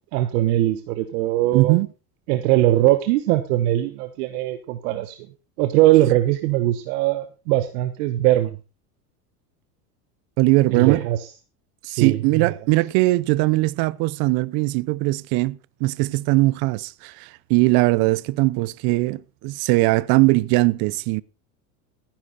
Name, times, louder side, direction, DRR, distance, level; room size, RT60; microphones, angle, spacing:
voice 1, 0.1-1.8 2.3-5.2 5.6-8.6 10.7-11.2 11.8-12.2, right 15 dB, 75° right, 1.3 m, -20 dB
voice 2, 1.5-1.9 10.4-11.1 11.8-21.2, right 21 dB, 55° right, 0.7 m, -20 dB
15.0 x 10.5 x 4.0 m
supercardioid pair, 110°, 46 cm